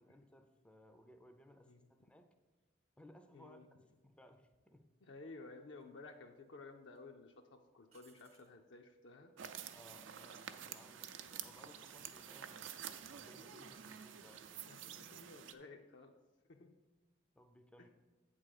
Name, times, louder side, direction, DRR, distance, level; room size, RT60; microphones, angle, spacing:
voice 1, 0.0-1.7 2.0-2.3 3.0-3.6 4.0-4.9 9.7-12.8 13.1-14.5 17.3-17.9, equal, 5° left, 6 dB, 0.4 m, -62 dB
voice 2, 3.3-3.7 5.0-9.3 14.6-16.1 16.5-16.7 17.8-17.9, left 3 dB, 65° left, 3 dB, 0.5 m, -55 dB
sound 1, 4.5-4.7 5.8-6.4 6.8-7.0 7.9-8.6 11.7-12.1, right 6 dB, 35° right, 0.6 m, -71 dB
sound 2, 9.4-15.5, right 9 dB, 75° right, 0.5 m, -49 dB
8.3 x 3.7 x 6.5 m, 1.2 s
head